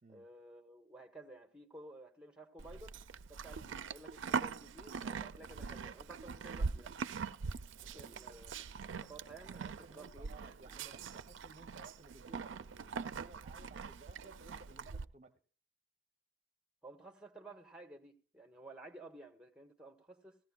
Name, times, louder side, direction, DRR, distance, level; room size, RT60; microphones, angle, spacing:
voice 1, 0.1-3.0 3.3-7.0 7.8-8.5 8.9-11.1 16.8-20.4, right 2 dB, 5° right, 1.0 m, -54 dB
Livestock farm animals working animals, 2.6-15.0, right 5 dB, 80° right, 0.4 m, -42 dB
voice 2, 7.9-8.4 9.5-15.4, right 3 dB, 35° right, 0.7 m, -58 dB
16.5 x 14.5 x 2.3 m
head